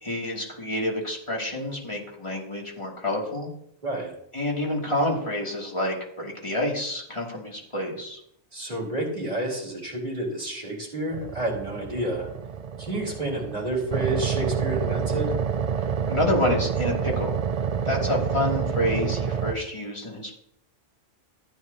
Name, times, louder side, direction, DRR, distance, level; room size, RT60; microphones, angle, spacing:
voice 1, 0.0-3.5 4.3-8.2 16.1-17.4 17.8-20.3, left 1 dB, 25° left, -3 dB, 2.5 m, -28 dB
voice 2, 3.8-4.1 8.5-12.3 12.8-15.4, right 1 dB, 35° right, -3 dB, 3.8 m, -30 dB
sound 1, 11.1-19.5, right 7 dB, 55° right, 0.4 m, -28 dB
15.0 x 9.4 x 2.8 m, 0.73 s
omnidirectional pair, 1.2 m